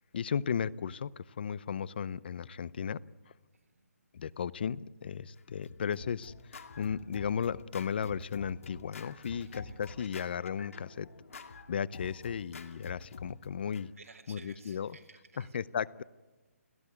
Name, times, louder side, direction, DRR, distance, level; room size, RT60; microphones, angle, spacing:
voice 1, 0.1-3.0 4.1-11.1 11.7-13.9 14.3-14.9 15.5-16.0, left 7 dB, 40° left, 21 dB, 0.6 m, -35 dB
voice 2, 3.5-3.9 9.3-9.8 14.0-15.6, right 4 dB, 75° right, 3 dB, 3.9 m, -56 dB
Scratching (performance technique), 5.4-13.8, left 4 dB, 65° left, 2.3 m, -47 dB
30.0 x 12.0 x 9.5 m, 1.2 s
hypercardioid pair, 170°, 8 cm